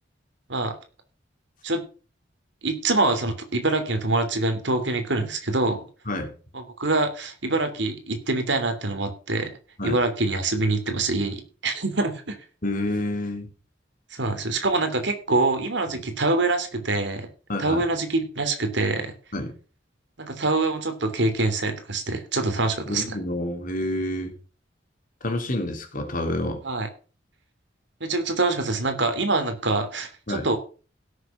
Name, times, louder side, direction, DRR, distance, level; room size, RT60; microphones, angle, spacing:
voice 1, 2.6-5.8 6.5-9.6 9.8-12.4 14.1-17.3 17.6-19.1 20.2-23.1 26.6-26.9 28.0-30.6, right 2 dB, 65° right, 7 dB, 3.0 m, -25 dB
voice 2, 12.6-13.5 17.5-17.8 19.3-19.5 22.9-24.3 25.2-26.6 30.3-30.5, left 1 dB, 45° left, 4 dB, 3.3 m, -28 dB
16.5 x 7.0 x 6.0 m, 0.37 s
head